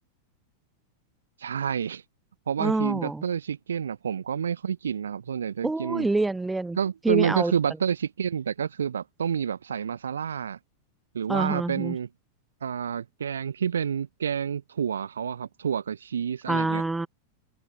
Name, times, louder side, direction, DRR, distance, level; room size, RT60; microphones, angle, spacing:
voice 1, 1.4-2.0 2.5-6.1 6.8-10.6 11.1-12.1 12.6-16.8, right 7 dB, 70° right, 6.2 m, -29 dB
voice 2, 2.6-3.2 5.6-6.8 7.0-7.5 11.3-12.0 16.5-17.1, right 2 dB, 10° right, 3.6 m, -26 dB
figure-of-eight pair, 90°, 0 cm